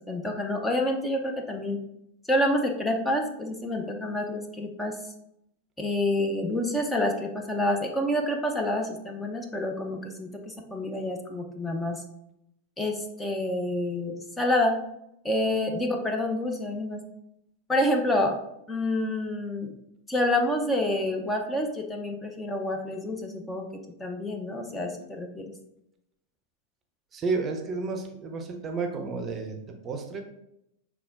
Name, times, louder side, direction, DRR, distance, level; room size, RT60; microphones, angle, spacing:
voice 1, 0.1-1.8 2.3-5.0 5.8-12.0 12.8-14.7 15.2-17.0 17.7-18.3 18.7-19.7 20.1-23.7 24.0-25.5, left 1 dB, 10° left, 3 dB, 0.6 m, -28 dB
voice 2, 27.1-30.2, right 4 dB, 25° right, 5 dB, 0.6 m, -31 dB
5.9 x 3.5 x 2.4 m, 0.81 s
figure-of-eight pair, 90°, 0 cm